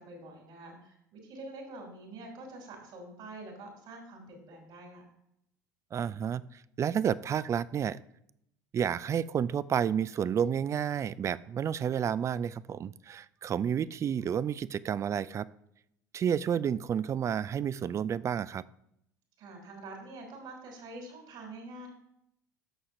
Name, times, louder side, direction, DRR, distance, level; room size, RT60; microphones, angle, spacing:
voice 1, 0.0-5.0 19.4-21.9, right 2 dB, 55° right, 1 dB, 2.8 m, -46 dB
voice 2, 5.9-8.0 8.7-15.5 16.1-18.6, right 8 dB, 30° right, 19 dB, 0.3 m, -30 dB
14.0 x 6.3 x 2.6 m, 0.77 s
figure-of-eight pair, 70°, 10 cm